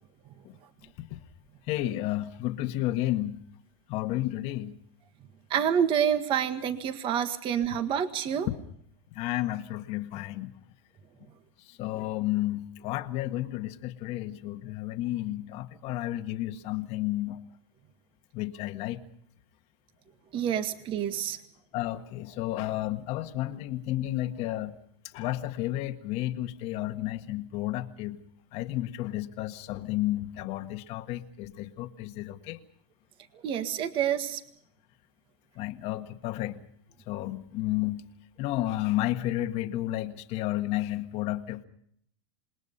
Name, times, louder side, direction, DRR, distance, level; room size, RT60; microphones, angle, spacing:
voice 1, 1.7-3.4 3.9-4.8 8.5-8.6 9.1-10.5 11.6-17.4 18.3-19.0 20.4-20.5 21.7-24.7 25.1-28.2 28.5-32.6 35.5-36.6 37.1-38.1 38.4-41.6, left 15 dB, 45° left, 7 dB, 1.5 m, -32 dB
voice 2, 5.5-8.5 20.3-21.4 33.4-34.4, right 9 dB, 35° right, 9 dB, 1.8 m, -28 dB
27.5 x 20.5 x 5.6 m, 0.67 s
supercardioid pair, 135°, 15 cm